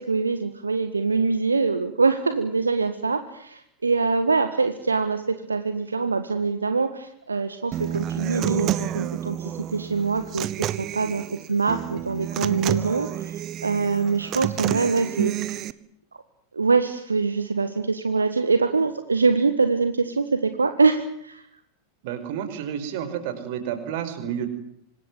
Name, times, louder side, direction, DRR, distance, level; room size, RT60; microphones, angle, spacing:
voice 1, 0.0-10.5 10.8-13.4 13.6-15.3 16.5-21.4, right 4 dB, 75° right, 9 dB, 1.6 m, -24 dB
Human voice / Acoustic guitar, 7.7-15.7, right 12 dB, 35° right, 1.3 m, -29 dB
voice 2, 22.0-24.5, right 9 dB, 50° right, 9 dB, 5.3 m, -30 dB
26.0 x 20.5 x 9.3 m, 0.69 s
figure-of-eight pair, 90°, 0 cm